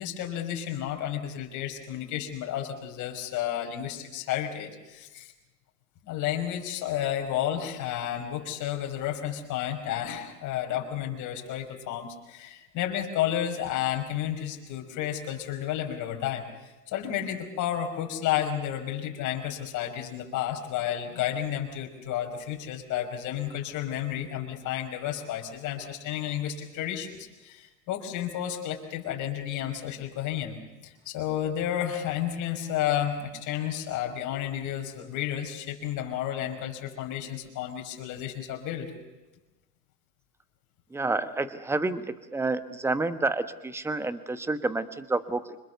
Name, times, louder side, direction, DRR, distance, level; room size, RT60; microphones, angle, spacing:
voice 1, 0.0-5.3 6.0-16.4 16.9-30.6 30.8-38.9, left 11 dB, 40° left, 3 dB, 5.5 m, -31 dB
voice 2, 40.9-45.6, right 3 dB, 5° right, 12 dB, 1.2 m, -29 dB
26.0 x 21.5 x 6.9 m, 1.1 s
hypercardioid pair, 120°, 46 cm